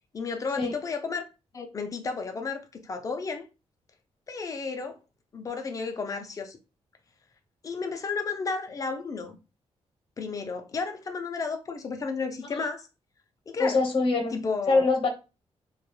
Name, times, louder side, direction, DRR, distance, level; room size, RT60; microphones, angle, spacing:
voice 1, 0.1-1.2 1.5-3.5 4.3-5.0 5.3-6.6 7.6-9.4 10.2-12.9 13.5-13.8 14.3-14.9, left 4 dB, 30° left, 0.4 m, -32 dB
voice 2, 13.6-15.1, left 3 dB, 50° left, 0.8 m, -24 dB
2.3 x 2.2 x 3.0 m
wide cardioid pair, 170°, 12 cm